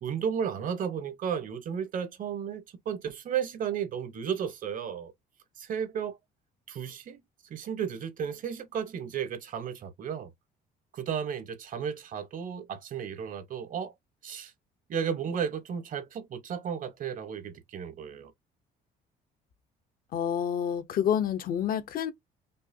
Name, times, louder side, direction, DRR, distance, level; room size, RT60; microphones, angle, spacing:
voice 1, 0.0-5.1 5.6-6.2 6.7-7.2 7.5-10.3 10.9-13.9 14.2-14.5 14.9-18.3, right 7 dB, 55° right, 1.0 m, -33 dB
voice 2, 20.1-22.1, left 9 dB, 60° left, 0.7 m, -28 dB
5.4 x 2.0 x 2.6 m
cardioid pair, 110°, 17 cm